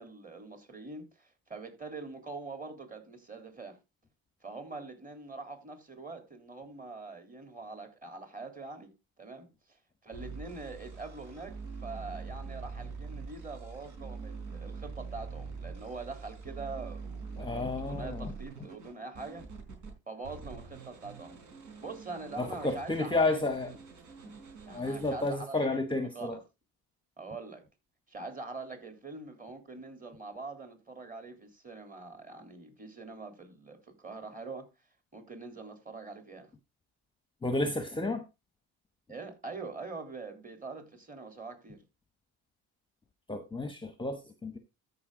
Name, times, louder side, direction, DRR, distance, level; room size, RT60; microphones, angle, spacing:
voice 1, 0.0-3.8 4.4-8.9 9.2-11.5 11.8-19.4 20.1-21.4 21.8-23.4 23.6-23.8 24.7-26.4 27.2-27.6 28.1-34.6 35.1-36.5 39.1-41.8, right 3 dB, 20° right, 3.4 m, -44 dB
sound 1, 10.1-19.9 20.2-25.3, right 4 dB, 55° right, 4.7 m, -44 dB
voice 2, 17.4-18.3 22.4-23.7 24.7-26.4 37.4-38.2 43.3-44.6, left 2 dB, 15° left, 1.1 m, -31 dB
13.5 x 5.6 x 3.8 m
cardioid pair, 100°, 37 cm